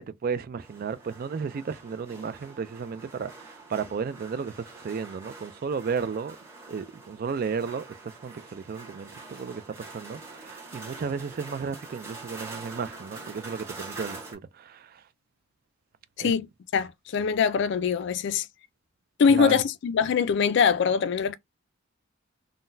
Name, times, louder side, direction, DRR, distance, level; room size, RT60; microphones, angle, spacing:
voice 1, 0.0-6.4 6.7-15.0 16.2-16.4 19.3-19.6, right 6 dB, 45° right, 0.3 m, -34 dB
sound 1, 0.6-14.4, right 3 dB, 15° right, 1.0 m, -45 dB
voice 2, 16.7-18.5 19.2-21.3, left 6 dB, 55° left, 0.3 m, -23 dB
3.8 x 2.1 x 2.6 m
head